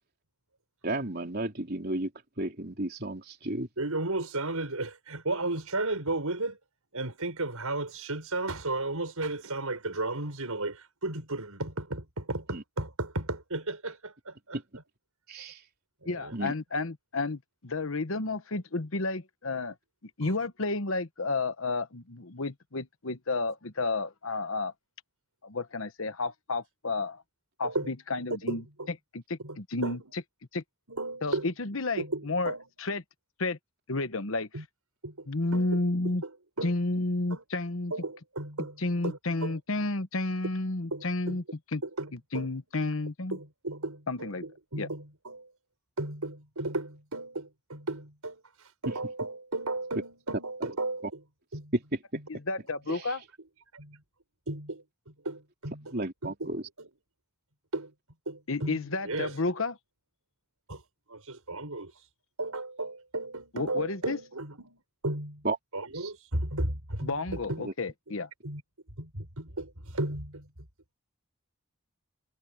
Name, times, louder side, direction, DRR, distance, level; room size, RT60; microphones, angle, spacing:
voice 1, 0.8-2.1 2.4-3.7 12.5-12.6 15.3-15.6 16.3-16.5 52.9-53.1 55.9-56.6 65.4-65.6 65.9-66.1 67.6-67.7, right 2 dB, 45° right, 3.7 m, -33 dB
voice 2, 3.8-6.6 6.9-14.6 15.4-15.5 16.0-16.4 20.2-20.3 27.6-27.9 28.4-28.9 29.4-29.6 29.8-30.0 30.9-31.5 32.0-32.7 34.5-34.6 35.0-36.3 36.6-36.8 37.3-37.4 37.9-39.6 40.9-41.4 41.8-42.6 43.3-45.5 46.0-51.2 51.5-51.7 53.7-54.0 54.5-56.9 57.7-57.9 58.2-59.4 60.7-60.8 61.1-62.1 62.4-65.5 65.7-67.7 68.4-68.6 69.0-70.5, right 2 dB, 85° right, 6.6 m, -35 dB
voice 3, 16.0-19.7 20.2-24.7 25.4-27.2 27.6-28.6 29.1-30.0 30.5-30.6 31.2-32.5 32.8-33.0 33.4-33.6 33.9-34.5 35.3-36.2 36.6-37.9 38.8-41.4 41.7-41.8 42.3-43.4 44.1-44.4 44.8-44.9 52.3-53.2 58.5-59.8 63.5-64.2 67.0-68.3, left 3 dB, 65° left, 1.2 m, -31 dB
head